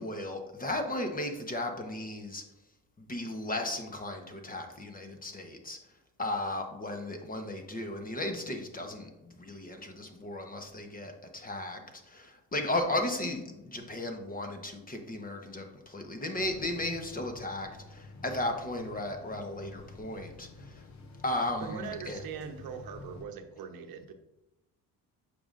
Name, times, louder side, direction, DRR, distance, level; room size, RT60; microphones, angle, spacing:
voice 1, 0.0-2.4 3.0-5.8 6.2-20.8 21.2-22.2, left 1 dB, 20° left, 4 dB, 1.0 m, -35 dB
sound 1, 16.4-23.3, left 3 dB, 45° left, 0.9 m, -49 dB
voice 2, 21.6-24.1, right 7 dB, 70° right, 7 dB, 0.9 m, -41 dB
8.4 x 5.5 x 2.5 m, 0.96 s
cardioid pair, 100°, 37 cm